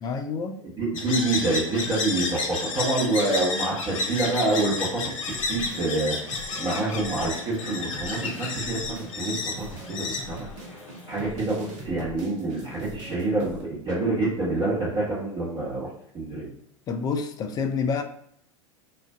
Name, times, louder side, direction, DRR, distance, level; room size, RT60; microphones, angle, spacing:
voice 1, 0.0-0.6 16.9-18.0, left 5 dB, 25° left, 6 dB, 0.3 m, -28 dB
voice 2, 0.8-5.1 5.5-8.8 9.1-10.8 11.1-16.5, right 2 dB, 30° right, -9 dB, 1.0 m, -27 dB
sound 1, 1.0-11.2, left 4 dB, 75° left, 0.5 m, -32 dB
sound 2, 1.0-3.5 4.0-13.6, right 1 dB, 60° right, 0.9 m, -43 dB
2.4 x 2.3 x 2.3 m, 0.69 s
hypercardioid pair, 95°, 17 cm